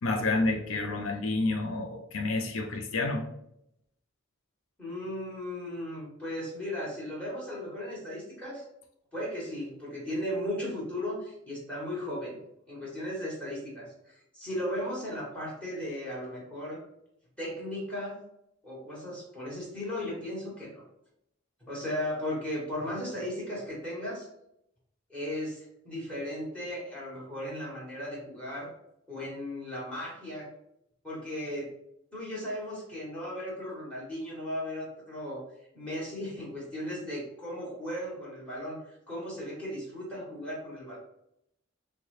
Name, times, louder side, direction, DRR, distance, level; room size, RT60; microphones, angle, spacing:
voice 1, 0.0-3.2, left 2 dB, 75° left, 3 dB, 0.5 m, -29 dB
voice 2, 4.8-8.6 9.1-12.4 12.7-16.8 17.4-18.2 18.6-20.8 21.7-24.3 25.1-28.7 29.1-30.5 31.0-31.7 32.1-35.4 35.7-41.0, left 1 dB, 5° left, -5 dB, 1.4 m, -36 dB
4.5 x 2.2 x 3.1 m, 0.79 s
head